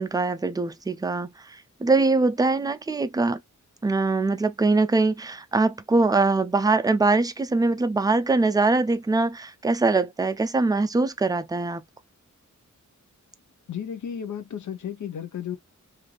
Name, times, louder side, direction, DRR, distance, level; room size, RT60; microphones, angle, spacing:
voice 1, 0.0-3.4 3.8-11.8, right 3 dB, 15° right, 0.3 m, -23 dB
voice 2, 13.7-15.6, left 8 dB, 70° left, 0.7 m, -33 dB
3.2 x 2.6 x 2.2 m
wide cardioid pair, 130°, 31 cm